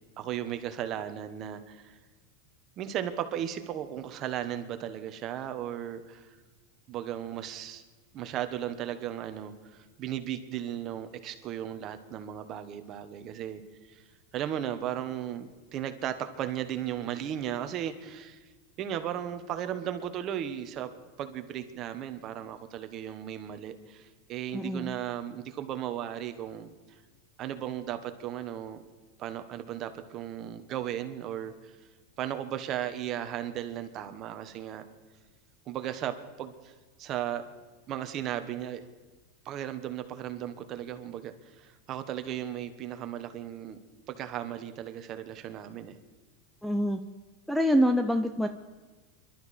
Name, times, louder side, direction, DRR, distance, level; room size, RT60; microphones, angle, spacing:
voice 1, 0.2-2.0 2.8-6.4 6.9-7.8 8.1-9.5 10.0-13.6 13.9-14.0 14.3-18.5 18.8-20.9 21.2-26.7 27.4-28.8 29.2-31.7 32.2-34.9 35.7-36.7 37.0-37.5 37.9-38.8 39.4-43.8 44.1-46.0, right 10 dB, 35° right, 9 dB, 1.1 m, -36 dB
voice 2, 24.5-25.0 46.6-47.0 47.5-48.5, equal, ahead, 8 dB, 0.5 m, -25 dB
25.0 x 12.0 x 4.3 m, 1.3 s
supercardioid pair, 155°, 0 cm